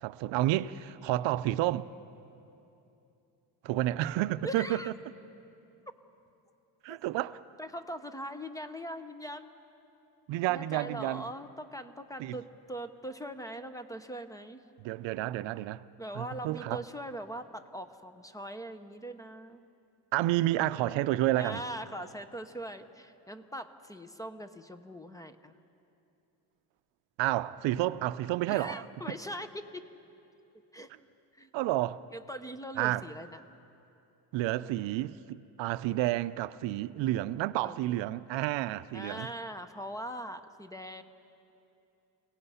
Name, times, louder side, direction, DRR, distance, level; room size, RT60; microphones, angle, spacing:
voice 1, 0.0-1.9 3.6-4.9 6.8-7.4 10.3-11.2 12.2-12.3 14.8-15.8 16.1-16.8 20.1-21.6 27.2-28.8 31.5-32.0 32.8-33.0 34.3-39.3, right 15 dB, 85° right, 0.6 m, -30 dB
voice 2, 4.4-4.9 6.9-7.0 7.6-9.5 10.5-14.6 16.0-19.6 21.4-25.6 28.5-29.9 30.7-30.9 31.3-31.5 32.1-33.4 37.6-38.0 38.9-41.0, equal, 10° left, 0.7 m, -41 dB
28.5 x 18.0 x 5.6 m
cardioid pair, 140°, 44 cm